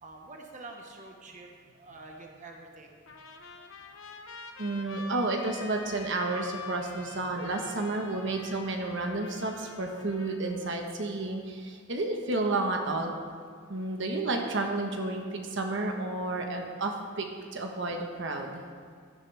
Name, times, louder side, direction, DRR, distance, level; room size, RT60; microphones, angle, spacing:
voice 1, 0.0-2.9 8.0-8.2, right 2 dB, 40° right, 1 dB, 1.2 m, -47 dB
Trumpet, 3.1-10.7, left 3 dB, 75° left, 1.0 m, -46 dB
voice 2, 4.6-13.1 13.7-17.3 17.5-18.6, right 2 dB, 60° right, 2 dB, 1.2 m, -31 dB
16.0 x 11.5 x 3.4 m, 2.1 s
head